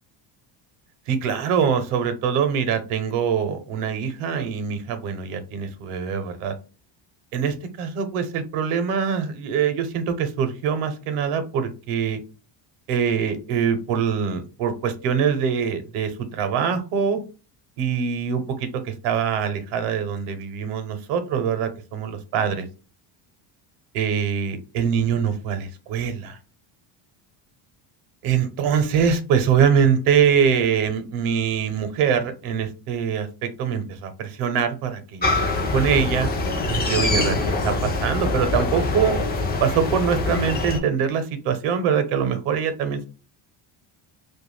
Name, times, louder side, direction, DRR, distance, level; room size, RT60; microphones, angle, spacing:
voice 1, 1.1-6.5 7.3-12.2 12.9-17.2 17.8-22.7 23.9-26.4 28.2-36.3 36.7-37.4 37.6-39.2 39.6-43.1, right 7 dB, 80° right, 9 dB, 0.8 m, -23 dB
sound 1, 35.2-40.8, left 3 dB, 20° left, 0.3 m, -24 dB
2.4 x 2.2 x 3.1 m, 0.34 s
cardioid pair, 125°, 50 cm